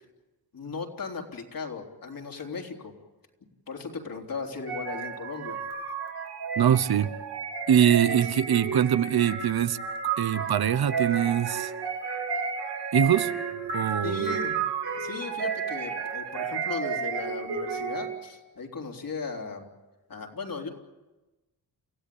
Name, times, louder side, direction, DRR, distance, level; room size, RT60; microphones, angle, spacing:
voice 1, 0.5-2.9 3.7-5.6 14.0-14.6 15.0-19.7 20.1-20.7, left 4 dB, 60° left, 3.5 m, -37 dB
sound 1, 4.7-18.3, right 6 dB, 85° right, 3.8 m, -32 dB
voice 2, 6.6-7.1 7.7-9.8 10.2-11.7 12.9-13.3 13.7-14.4, right 9 dB, 70° right, 1.0 m, -23 dB
29.0 x 16.5 x 8.6 m
wide cardioid pair, 130°, 39 cm